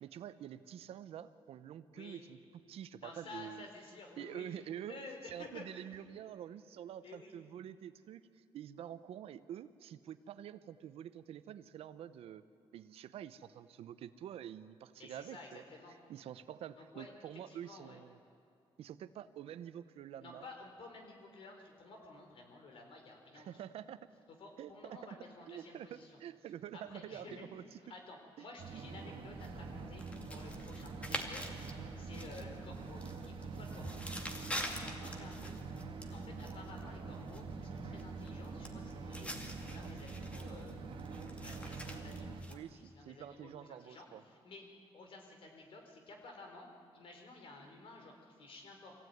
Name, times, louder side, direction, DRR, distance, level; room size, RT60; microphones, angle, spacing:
voice 1, 0.0-2.4 2.7-3.7 4.2-12.5 12.7-15.6 16.1-18.2 18.8-20.5 23.3-24.0 24.6-25.0 25.5-27.6 28.4-28.5 42.5-44.2, right 10 dB, 85° right, 13 dB, 0.8 m, -47 dB
voice 2, 1.9-2.2 3.0-4.5 4.9-5.6 7.0-7.4 15.0-15.9 16.8-17.1 17.5-18.0 20.2-23.5 24.4-26.1 26.7-27.5 27.9-30.0 30.3-31.5 32.0-40.8 41.4-44.6 44.9-46.7 46.9-48.9, left 3 dB, 65° left, 3 dB, 4.2 m, -53 dB
sound 1, 28.6-42.4, right 4 dB, 65° right, 2.0 m, -45 dB
sound 2, 29.4-42.5, equal, 15° left, 2.2 m, -47 dB
24.0 x 16.5 x 9.4 m, 2.4 s
cardioid pair, 100°, 10 cm